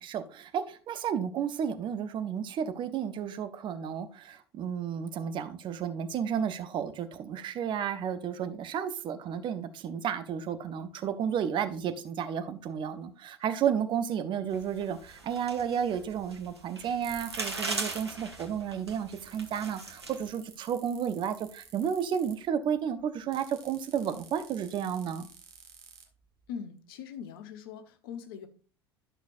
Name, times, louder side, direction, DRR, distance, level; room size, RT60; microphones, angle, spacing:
voice 1, 0.0-25.3, right 8 dB, 35° right, 0.9 m, -32 dB
sound 1, 14.5-20.3, right 2 dB, 85° right, 1.3 m, -40 dB
sound 2, 17.0-18.1 18.4-18.5 19.0-19.1 19.2-22.5 23.3-26.5, right 8 dB, 60° right, 1.4 m, -49 dB
voice 2, 26.5-28.5, left 7 dB, 60° left, 1.1 m, -41 dB
12.0 x 6.1 x 2.5 m
figure-of-eight pair, 75°, 13 cm